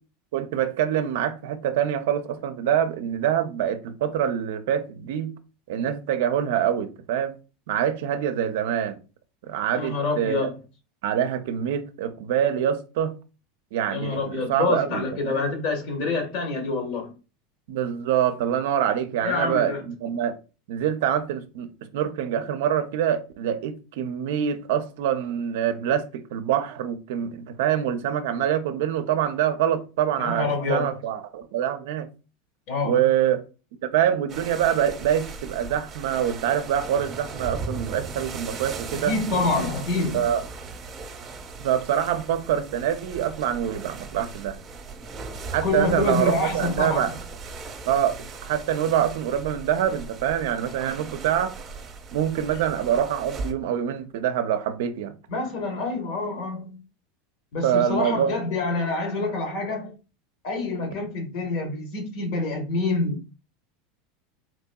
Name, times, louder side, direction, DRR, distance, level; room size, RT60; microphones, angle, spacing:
voice 1, 0.3-5.3 5.7-7.3 7.7-9.0 9.5-10.5 11.0-13.1 13.7-15.5 17.7-20.3 20.7-21.7 21.9-32.1 32.8-33.4 33.8-39.1 40.1-40.4 41.6-44.6 45.5-47.1 47.9-51.5 52.1-55.1 57.6-58.3, right 9 dB, 75° right, 0.4 m, -25 dB
voice 2, 9.7-10.5 13.9-17.1 19.2-19.8 30.2-30.9 32.7-33.0 39.0-40.2 45.6-47.1 55.3-56.8 57.5-59.9 60.4-63.3, left 3 dB, 65° left, 1.3 m, -27 dB
sound 1, 34.3-53.5, right 4 dB, 35° right, 0.7 m, -38 dB
4.0 x 2.7 x 2.2 m
supercardioid pair, 110°, 0 cm